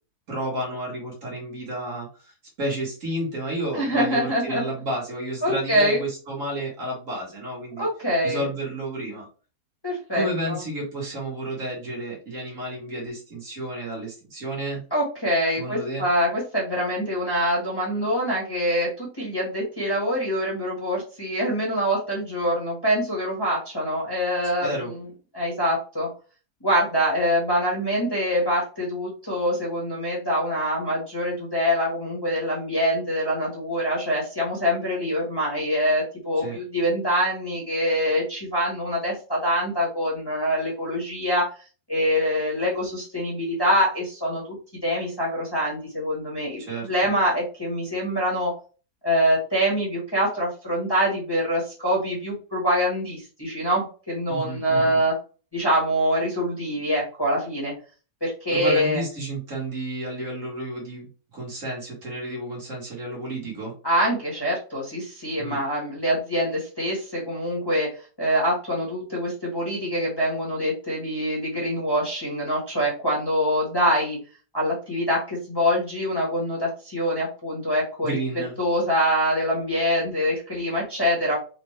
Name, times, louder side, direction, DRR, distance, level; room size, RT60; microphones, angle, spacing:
voice 1, 0.3-7.9 8.2-9.3 10.1-14.8 15.5-16.0 24.6-24.9 36.4-36.6 46.6-47.1 54.3-55.0 58.5-61.1 61.3-63.7 65.4-65.6 78.0-78.5, right 1 dB, 55° right, -3 dB, 2.0 m, -31 dB
voice 2, 3.7-4.6 5.4-6.0 7.8-8.5 9.8-10.6 14.9-24.7 25.3-26.1 26.6-41.5 41.9-44.5 44.8-48.5 49.0-55.1 55.5-57.7 58.2-59.0 63.8-67.9 68.2-74.2 74.5-78.1 78.6-81.4, equal, 15° left, -4 dB, 1.3 m, -24 dB
4.2 x 2.6 x 3.2 m, 0.36 s
omnidirectional pair, 1.6 m